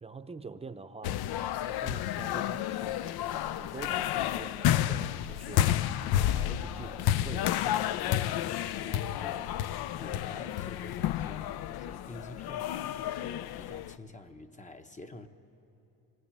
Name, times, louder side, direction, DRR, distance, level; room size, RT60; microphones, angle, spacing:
voice 1, 0.0-1.3 1.7-5.7 6.3-7.6, right 4 dB, 15° right, 0.7 m, -45 dB
sound 1, 1.0-13.9, left 12 dB, 70° left, 0.6 m, -31 dB
voice 2, 8.0-15.3, left 2 dB, 20° left, 0.8 m, -48 dB
26.5 x 19.5 x 8.8 m
cardioid pair, 145°, 38 cm